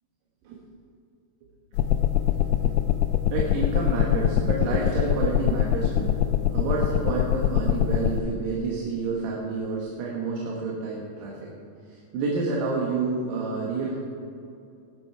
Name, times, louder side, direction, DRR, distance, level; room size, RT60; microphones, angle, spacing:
sound 1, 1.8-8.2, left 12 dB, 85° left, 2.8 m, -23 dB
voice 1, 3.3-6.2 6.5-11.5 11.9-14.0, right 3 dB, 70° right, -3 dB, 3.5 m, -29 dB
19.5 x 8.3 x 4.7 m, 2.5 s
omnidirectional pair, 5.0 m